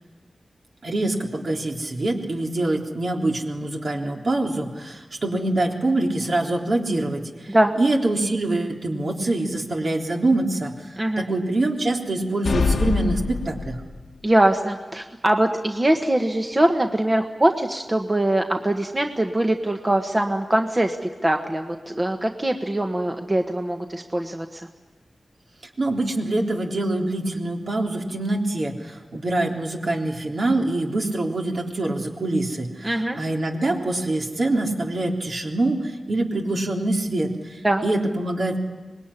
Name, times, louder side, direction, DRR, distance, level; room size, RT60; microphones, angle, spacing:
voice 1, 0.8-7.5 7.8-10.7 11.2-13.8 25.8-38.6, right 2 dB, 60° right, 0 dB, 3.6 m, -25 dB
sound 1, 12.5-14.1, left 4 dB, 90° left, 1.2 m, -24 dB
voice 2, 14.2-21.0 21.2-24.6 32.8-33.2 37.6-37.8, right 1 dB, 25° right, 4 dB, 1.4 m, -22 dB
25.5 x 20.5 x 9.9 m, 1.3 s
wide cardioid pair, 85°, 0 cm